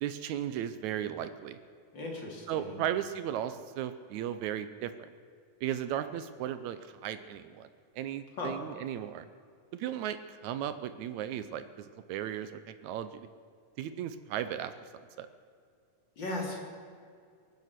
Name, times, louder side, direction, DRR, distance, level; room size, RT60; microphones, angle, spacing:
voice 1, 0.0-1.6 2.5-5.1 5.6-7.7 8.0-9.3 9.7-13.3 13.8-14.7 15.2-15.3, right 10 dB, 80° right, 11 dB, 1.9 m, -36 dB
voice 2, 1.9-2.8 8.4-8.5 16.2-16.6, left 2 dB, 35° left, 0 dB, 3.3 m, -36 dB
23.0 x 9.4 x 6.7 m, 2.2 s
omnidirectional pair, 3.6 m